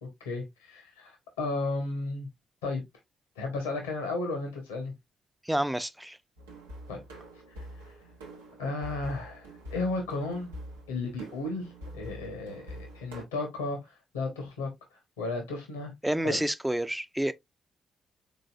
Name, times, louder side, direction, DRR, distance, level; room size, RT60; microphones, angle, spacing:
voice 1, 0.0-2.3 2.6-2.8 3.4-4.9 6.9-7.0 7.6-7.7 8.6-10.5 10.9-14.7 15.2-15.9 16.2-16.4, left 3 dB, 90° left, 1.1 m, -34 dB
voice 2, 5.5-6.2 16.0-17.3, right 1 dB, 10° right, 0.5 m, -29 dB
sound 1, 6.4-13.2, equal, 90° right, 0.8 m, -45 dB
3.9 x 3.8 x 2.5 m
hypercardioid pair, 40°, 0 cm